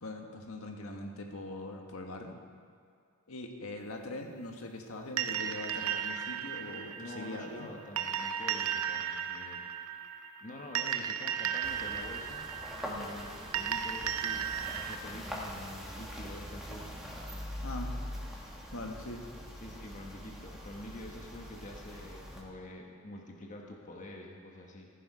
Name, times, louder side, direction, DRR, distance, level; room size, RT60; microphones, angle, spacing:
voice 1, 0.0-2.4 3.3-7.7 17.6-18.0 18.7-19.2, left 2 dB, 75° left, 2 dB, 1.6 m, -42 dB
sound 1, 5.2-15.0, right 8 dB, 85° right, 0.7 m, -35 dB
voice 2, 6.9-9.7 10.4-12.5 12.8-14.5 14.8-16.9 18.5-18.6 19.6-24.9, left 1 dB, 35° left, 0 dB, 1.3 m, -47 dB
sound 2, 11.6-22.4, equal, ahead, 1.9 m, -43 dB
15.0 x 11.0 x 5.0 m, 2.3 s
head